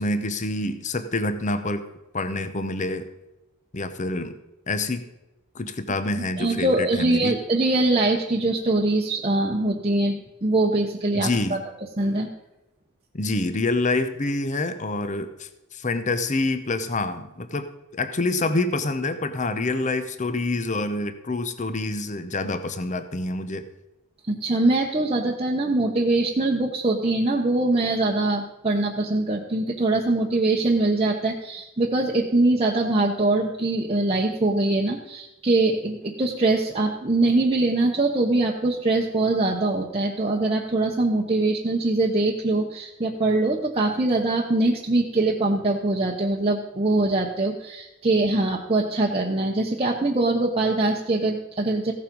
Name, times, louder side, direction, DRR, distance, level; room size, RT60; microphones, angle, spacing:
voice 1, 0.0-1.8 2.1-3.1 3.7-4.4 4.7-5.0 5.5-7.4 11.1-11.6 13.1-23.7, left 2 dB, 35° left, 10 dB, 0.8 m, -27 dB
voice 2, 6.4-11.6 12.0-12.3 24.3-51.9, right 2 dB, 25° right, -1 dB, 0.9 m, -23 dB
15.5 x 7.3 x 5.3 m, 0.96 s
head